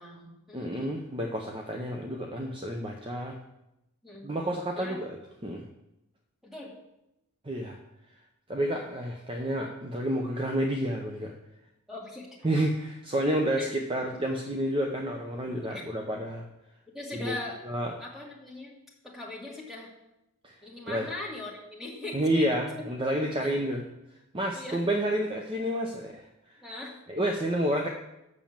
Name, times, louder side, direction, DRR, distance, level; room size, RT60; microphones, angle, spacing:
voice 1, 0.0-1.0 4.0-4.3 4.8-5.0 6.4-6.7 11.9-12.3 13.5-13.7 15.6-15.8 16.9-17.6 18.0-18.8 19.0-19.9 20.6-22.5 23.4-23.6 24.5-25.0 26.6-27.3, left 2 dB, ahead, -3 dB, 2.0 m, -40 dB
voice 2, 0.5-3.4 4.2-5.1 5.4-5.6 7.4-7.8 8.5-11.4 12.4-16.5 17.1-17.3 17.6-17.9 20.4-20.5 20.9-21.1 22.1-23.8 24.3-26.3 27.1-27.9, right 1 dB, 25° right, 2 dB, 0.6 m, -30 dB
7.3 x 6.1 x 7.2 m, 0.89 s
head